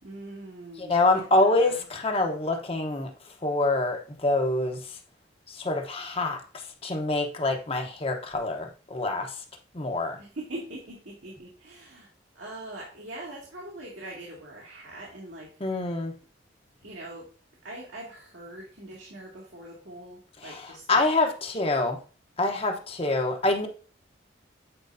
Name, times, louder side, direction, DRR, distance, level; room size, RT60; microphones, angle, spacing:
voice 1, 0.0-1.8 10.2-12.1 12.4-15.6 16.8-17.3 17.6-20.8, right 1 dB, 75° right, 2.0 m, -42 dB
voice 2, 0.8-3.1 3.4-4.8 5.5-6.4 6.8-9.4 9.7-10.2 15.6-16.1 20.4-22.0 22.4-23.7, left 2 dB, 30° left, 0.8 m, -26 dB
8.8 x 4.5 x 2.6 m
head